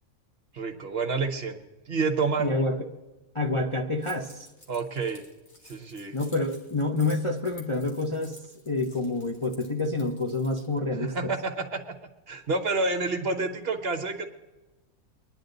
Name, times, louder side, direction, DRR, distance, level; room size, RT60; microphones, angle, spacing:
voice 1, 0.5-1.6 1.9-2.5 4.7-5.2 5.6-6.2 11.0-11.8 12.3-14.2, right 3 dB, 50° right, 7 dB, 1.3 m, -28 dB
voice 2, 2.4-2.8 3.3-4.5 6.1-11.3, left 2 dB, 25° left, 1 dB, 0.8 m, -28 dB
Keys jangling, 4.0-10.8, left 1 dB, 55° left, 2.6 m, -53 dB
23.0 x 10.5 x 4.0 m, 1.1 s
omnidirectional pair, 1.4 m